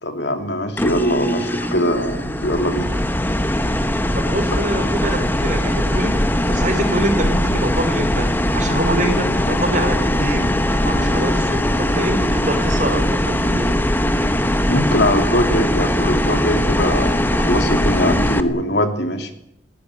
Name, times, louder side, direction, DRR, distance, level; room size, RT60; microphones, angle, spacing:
voice 1, 0.0-2.9 14.7-19.3, equal, 65° left, 6 dB, 3.0 m, -21 dB
sound 1, 0.8-18.4, left 1 dB, 10° left, 1.2 m, -20 dB
voice 2, 4.1-13.8, right 1 dB, 40° right, 6 dB, 4.9 m, -24 dB
21.5 x 16.5 x 9.5 m, 0.76 s
head